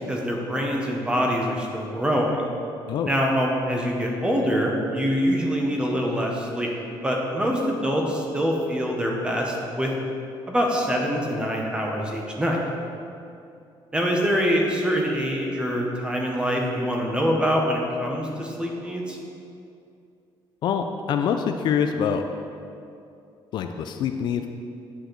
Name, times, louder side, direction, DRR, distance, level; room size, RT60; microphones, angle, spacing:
voice 1, 0.0-2.5 3.1-6.7 7.0-9.9 10.5-12.6 13.9-19.2, equal, 10° right, 0 dB, 0.8 m, -24 dB
voice 2, 20.6-22.3 23.5-24.5, left 7 dB, 55° left, 6 dB, 0.4 m, -25 dB
9.2 x 6.3 x 3.9 m, 2.6 s
cardioid pair, 180°, 9 cm